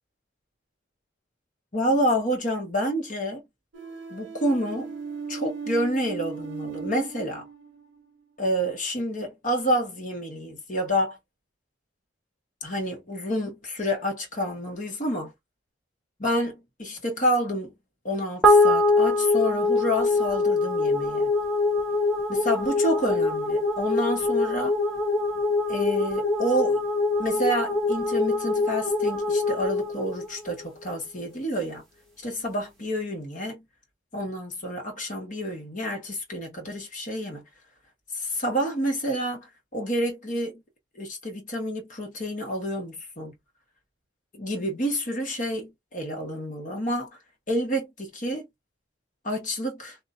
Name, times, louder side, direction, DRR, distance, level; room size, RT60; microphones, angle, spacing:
voice 1, 1.7-3.4 4.1-4.9 5.3-7.5 8.4-11.2 12.6-15.3 16.2-17.7 18.0-21.3 22.3-24.8 25.7-26.8 27.2-31.8 32.2-33.6 34.1-37.4 38.1-40.6 40.9-43.3 44.3-47.1 47.5-48.4 49.2-50.0, equal, 40° left, 1.4 m, -28 dB
sound 1, 3.7-8.0, right 5 dB, 65° right, 0.7 m, -37 dB
sound 2, 18.4-30.9, left 2 dB, ahead, 1.1 m, -24 dB
3.0 x 2.6 x 2.5 m
head